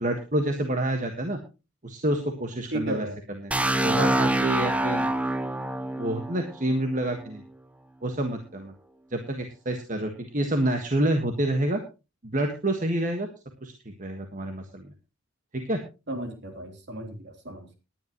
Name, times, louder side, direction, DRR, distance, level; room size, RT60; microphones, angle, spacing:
voice 1, 0.0-1.4 1.8-5.1 6.0-7.4 8.0-8.7 9.1-11.8 12.2-13.3 13.6-14.9 15.5-15.8, right 1 dB, 40° right, 5 dB, 1.5 m, -28 dB
voice 2, 2.7-3.2 16.1-17.7, right 1 dB, 55° right, 4 dB, 3.4 m, -34 dB
sound 1, 3.5-7.3, right 1 dB, 5° right, 0.7 m, -26 dB
19.0 x 10.5 x 3.0 m, 0.29 s
head